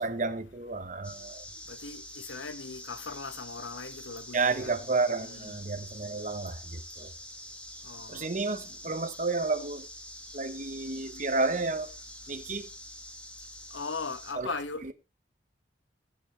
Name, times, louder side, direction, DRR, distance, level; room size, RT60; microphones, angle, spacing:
voice 1, 0.0-1.4 4.3-7.1 8.1-9.9 10.3-11.9 12.3-12.7 14.4-14.5, right 3 dB, 40° right, 1.0 m, -31 dB
sound 1, 1.0-14.3, left 1 dB, 5° left, 1.5 m, -46 dB
voice 2, 1.7-4.7 5.2-5.6 7.8-8.3 13.7-14.9, left 4 dB, 80° left, 1.0 m, -39 dB
20.0 x 7.4 x 3.3 m
head